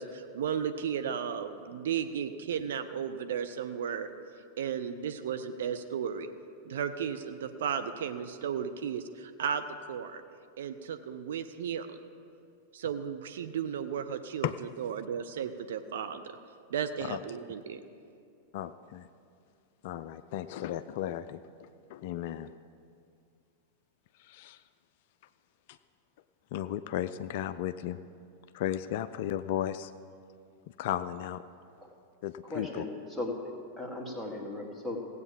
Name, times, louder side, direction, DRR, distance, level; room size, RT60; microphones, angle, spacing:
voice 1, 0.0-4.1 4.6-6.3 6.7-10.2 10.6-12.0 12.7-16.4 16.7-17.8, right 7 dB, 60° right, 8 dB, 0.6 m, -34 dB
voice 2, 18.5-19.1 19.8-22.5 24.2-24.6 25.7-25.8 26.5-28.0 28.5-29.9 30.8-31.4 32.2-32.8, left 11 dB, 50° left, 12 dB, 0.3 m, -35 dB
voice 3, 32.4-35.0, left 2 dB, ahead, -2 dB, 1.8 m, -37 dB
16.5 x 8.1 x 5.3 m, 2.4 s
figure-of-eight pair, 90°, 0 cm